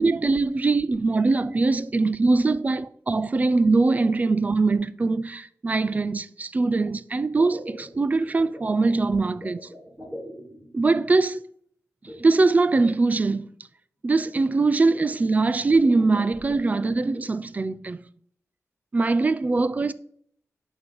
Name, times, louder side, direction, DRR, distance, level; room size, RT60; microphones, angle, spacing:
voice 1, 0.0-9.7 10.7-11.4 12.2-13.5 14.0-18.0 18.9-19.9, right 3 dB, 30° right, 0.3 m, -22 dB
sound 1, 7.3-10.9 12.1-12.7 13.4-13.5 14.1-14.4 15.0-15.3 15.7-17.3, equal, 10° right, 3.3 m, -43 dB
6.6 x 5.4 x 6.3 m
wide cardioid pair, 165°, 6 cm